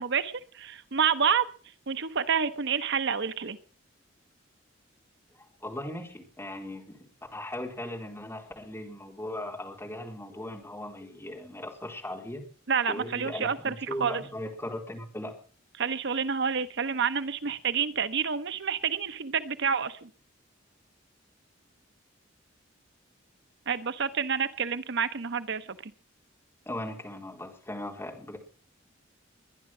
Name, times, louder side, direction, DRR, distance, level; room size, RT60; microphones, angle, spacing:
voice 1, 0.0-1.5 1.9-3.6 12.7-13.7 14.0-14.2 15.8-20.1 23.7-25.9, right 6 dB, 60° right, 12 dB, 0.9 m, -28 dB
voice 2, 5.4-7.1 7.3-12.4 12.9-15.4 26.7-28.4, left 1 dB, 15° left, 1 dB, 4.0 m, -38 dB
22.0 x 10.5 x 6.1 m, 0.42 s
head